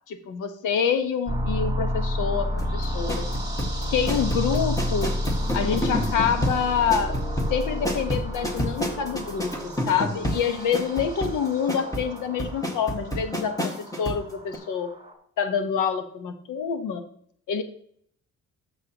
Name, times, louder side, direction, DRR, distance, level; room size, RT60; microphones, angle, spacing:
voice 1, 0.1-3.3 3.9-5.1 5.5-7.2 7.5-14.9 15.4-17.0 17.5-17.6, left 7 dB, 85° left, 8 dB, 1.2 m, -27 dB
sound 1, 1.3-15.1, equal, 15° right, 3.2 m, -31 dB
sound 2, 2.6-14.2 14.5-14.6, equal, 10° left, 1.8 m, -30 dB
13.0 x 7.0 x 3.0 m, 0.65 s
cardioid pair, 90°, 30 cm